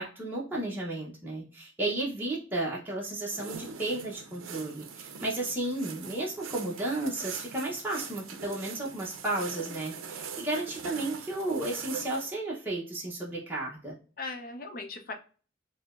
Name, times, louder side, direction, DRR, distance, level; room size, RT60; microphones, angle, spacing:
voice 1, 0.0-13.9, right 2 dB, 10° right, -4 dB, 0.7 m, -33 dB
sound 1, 3.3-12.3, right 6 dB, 75° right, 0.5 m, -42 dB
voice 2, 5.2-5.5 14.2-15.1, left 3 dB, 45° left, 4 dB, 0.6 m, -39 dB
4.7 x 2.1 x 2.3 m, 0.38 s
head